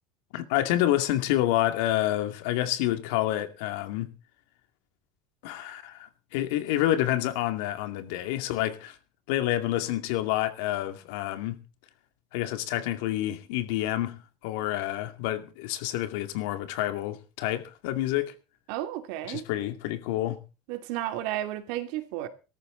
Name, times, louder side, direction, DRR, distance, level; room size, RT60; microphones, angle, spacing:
voice 1, 0.3-4.1 5.4-9.0 9.3-11.6 12.3-18.3 19.3-20.4, left 14 dB, 80° left, 2.3 m, -28 dB
voice 2, 18.7-19.4 20.7-22.3, right 13 dB, 70° right, 2.5 m, -32 dB
18.0 x 13.5 x 3.9 m
supercardioid pair, 130°, 0 cm